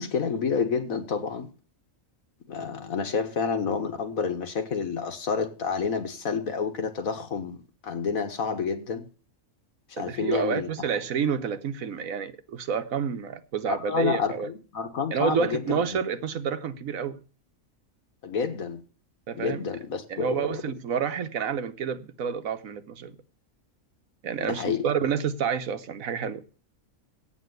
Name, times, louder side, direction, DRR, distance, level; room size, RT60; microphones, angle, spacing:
voice 1, 0.0-1.5 2.5-7.6 7.8-9.1 9.9-10.7 13.7-15.8 18.2-18.8 19.4-20.6 24.4-24.9, left 6 dB, 90° left, 1.8 m, -29 dB
voice 2, 10.0-14.5 15.1-17.2 19.3-19.7 20.1-23.2 24.2-26.6, right 7 dB, 75° right, 1.4 m, -29 dB
8.5 x 8.2 x 8.0 m
omnidirectional pair, 1.4 m